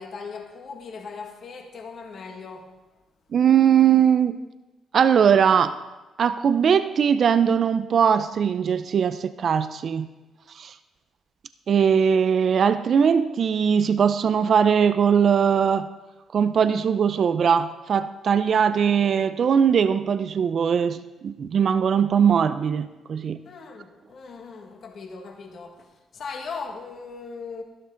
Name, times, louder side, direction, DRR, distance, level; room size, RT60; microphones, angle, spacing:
voice 1, 0.0-2.7 23.4-27.6, left 5 dB, 55° left, 3 dB, 1.6 m, -38 dB
voice 2, 3.3-4.4 4.9-5.8 6.2-10.1 10.6-10.7 11.7-15.9 16.3-23.4, right 7 dB, 55° right, 12 dB, 0.4 m, -20 dB
12.0 x 11.5 x 3.9 m, 1.1 s
cardioid pair, 90°, 0 cm